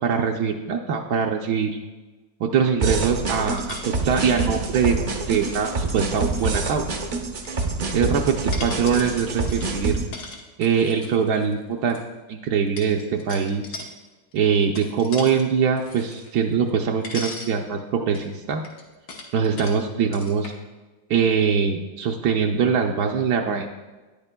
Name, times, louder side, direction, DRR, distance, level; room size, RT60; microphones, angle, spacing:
voice 1, 0.0-1.7 2.4-6.8 7.9-10.0 10.6-12.0 12.3-13.6 14.3-18.6 19.3-20.5 21.1-23.7, right 6 dB, 80° right, 1 dB, 1.2 m, -22 dB
sound 1, 2.8-10.1, right 3 dB, 50° right, 0.5 m, -26 dB
sound 2, 3.5-6.7 7.3-8.0 8.4-12.0 12.8-13.9 14.3-15.4 15.8-16.8 17.0-17.5 18.1-19.8 20.1-20.5, left 3 dB, 80° left, 1.6 m, -39 dB
12.0 x 9.7 x 2.2 m, 1.2 s
omnidirectional pair, 1.6 m